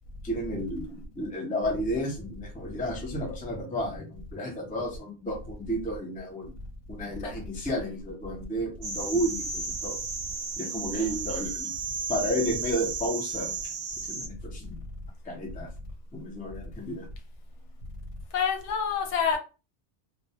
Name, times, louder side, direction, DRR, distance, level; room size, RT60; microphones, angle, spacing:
voice 1, 0.2-6.5 6.9-10.0 10.6-11.7 12.1-13.5 14.0-14.8 15.2-15.7 16.1-17.1, equal, 10° left, 0.4 m, -32 dB
sound 1, 8.8-14.3, right 5 dB, 65° right, 0.7 m, -34 dB
voice 2, 18.3-19.4, left 6 dB, 80° left, 0.9 m, -27 dB
2.2 x 2.1 x 2.7 m
omnidirectional pair, 1.2 m